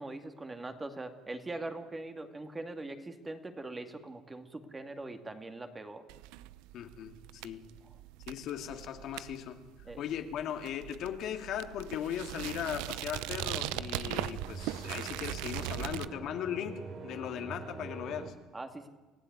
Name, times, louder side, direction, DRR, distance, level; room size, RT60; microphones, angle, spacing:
voice 1, 0.0-6.0 9.9-10.0 18.5-18.9, right 2 dB, 15° right, 6 dB, 2.5 m, -42 dB
sound 1, 6.1-16.1, right 16 dB, 85° right, 0.8 m, -40 dB
voice 2, 6.7-7.6 8.3-18.3, left 9 dB, 60° left, 6 dB, 2.4 m, -38 dB
sound 2, 13.1-18.3, right 5 dB, 40° right, 3.4 m, -45 dB
28.5 x 16.0 x 9.6 m, 1.2 s
cardioid pair, 125°, 0 cm